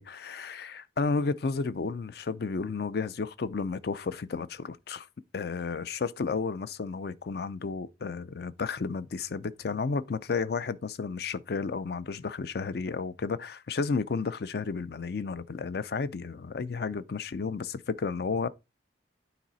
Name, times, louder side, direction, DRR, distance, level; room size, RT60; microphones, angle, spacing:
voice 1, 0.0-5.1 5.3-18.5, left 4 dB, 55° left, 0.4 m, -32 dB
9.0 x 4.0 x 4.0 m
head